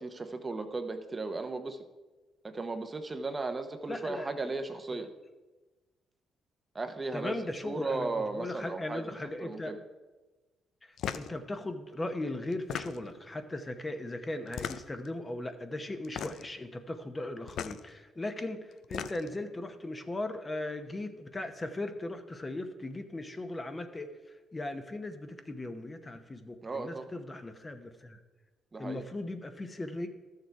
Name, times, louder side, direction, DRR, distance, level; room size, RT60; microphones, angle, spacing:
voice 1, 0.0-1.8 2.4-5.1 6.7-7.4 7.6-9.1 9.4-9.8 26.6-27.1 28.7-29.0, right 3 dB, 25° right, 7 dB, 0.8 m, -36 dB
voice 2, 3.9-4.5 4.9-5.1 7.1-9.8 10.8-24.1 24.5-28.2 28.8-30.1, left 2 dB, 25° left, 8 dB, 0.9 m, -38 dB
sound 1, 11.0-11.3 12.5-13.2 14.5-15.1 16.0-16.5 17.5-17.8 18.7-19.4, left 9 dB, 70° left, 0.4 m, -37 dB
12.5 x 6.7 x 4.7 m, 1.2 s
cardioid pair, 90°, 0 cm